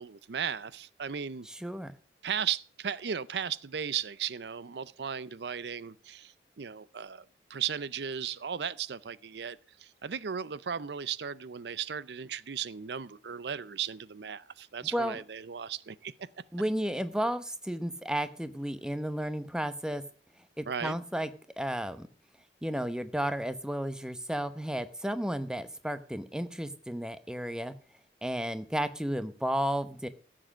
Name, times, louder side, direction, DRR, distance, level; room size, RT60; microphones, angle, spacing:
voice 1, 0.0-1.5 2.2-16.3 20.7-21.0, right 7 dB, 75° right, 0.6 m, -36 dB
voice 2, 1.5-1.9 14.9-15.1 16.5-20.0 20.6-21.3 21.6-22.1 22.6-27.7 28.2-30.1, equal, 5° right, 0.9 m, -33 dB
15.0 x 7.6 x 6.2 m
head